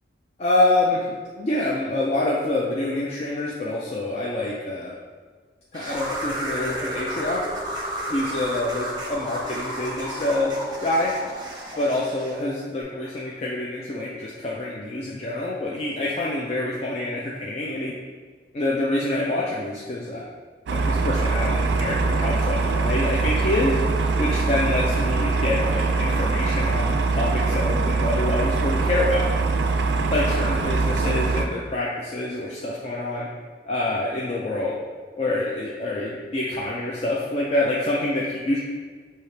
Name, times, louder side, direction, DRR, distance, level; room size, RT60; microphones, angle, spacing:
voice 1, 0.4-1.1 1.4-4.9 5.7-7.4 8.1-11.1 11.8-17.9 18.5-20.2 20.7-23.8 24.2-29.2 30.1-33.3 33.6-34.8 35.2-38.6, left 2 dB, 35° left, -4 dB, 0.4 m, -26 dB
sound 1, 5.7-12.4, right 1 dB, 25° right, 0.7 m, -32 dB
sound 2, 20.7-31.5, right 3 dB, 65° right, 0.3 m, -23 dB
5.5 x 2.8 x 3.2 m, 1.5 s
head